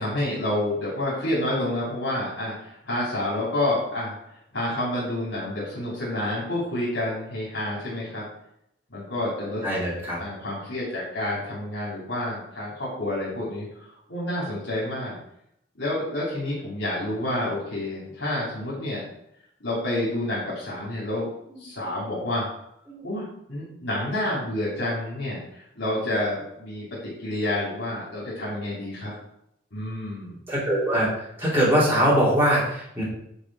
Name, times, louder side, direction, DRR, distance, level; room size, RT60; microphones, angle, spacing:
voice 1, 0.0-4.2 4.5-8.2 8.9-9.6 10.2-15.2 15.8-19.0 19.6-21.3 21.6-22.5 23.0-29.1 29.7-30.4, left 1 dB, 65° left, -7 dB, 3.6 m, -29 dB
voice 2, 9.6-10.2 21.9-22.1 22.9-23.0 23.8-23.9 30.5-31.1 31.4-33.0, equal, 10° right, -8 dB, 2.9 m, -22 dB
9.7 x 5.2 x 4.9 m, 0.75 s
head